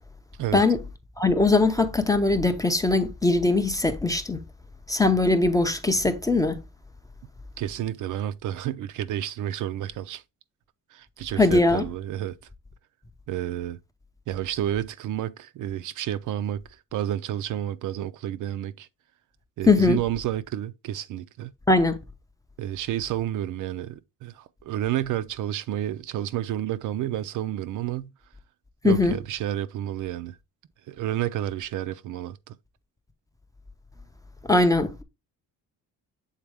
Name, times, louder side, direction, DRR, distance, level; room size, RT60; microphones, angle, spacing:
voice 1, 1.2-4.4 4.9-6.6 11.4-11.8 19.7-20.0 21.7-22.0 28.8-29.1 34.5-35.0, left 2 dB, 10° left, 0.4 m, -21 dB
voice 2, 7.6-10.2 10.9-12.3 13.3-13.8 14.3-16.6 16.9-18.9 19.6-21.5 22.6-28.1 28.8-30.4 30.9-32.5, right 12 dB, 60° right, 0.5 m, -30 dB
7.3 x 4.0 x 3.4 m
cardioid pair, 165°, 35 cm